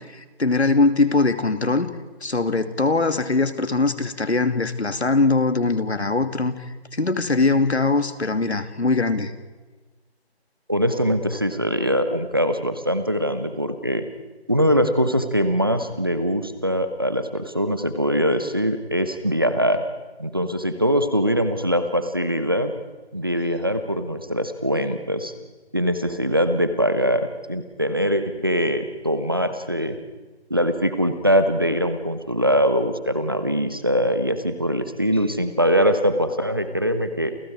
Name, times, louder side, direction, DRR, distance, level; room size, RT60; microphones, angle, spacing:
voice 1, 0.1-1.9 2.2-6.5 6.9-9.3, left 3 dB, 80° left, 10 dB, 2.7 m, -21 dB
voice 2, 10.7-14.0 14.5-19.8 20.2-22.7 23.1-25.3 25.7-30.0 30.5-37.3, equal, 20° right, 10 dB, 1.1 m, -22 dB
29.0 x 29.0 x 4.9 m, 1.2 s
figure-of-eight pair, 175°, 32 cm